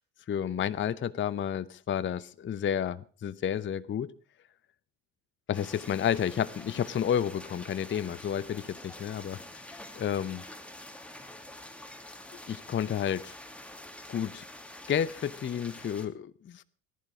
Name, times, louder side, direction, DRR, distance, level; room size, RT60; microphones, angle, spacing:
voice 1, 0.3-4.1 5.5-9.4 9.9-10.4 12.5-13.4 14.1-14.4 14.9-16.6, left 9 dB, 25° left, 15 dB, 0.7 m, -31 dB
sound 1, 5.5-16.1, left 1 dB, 5° left, 2.4 m, -47 dB
19.0 x 11.0 x 4.8 m, 0.40 s
hypercardioid pair, 65°, 48 cm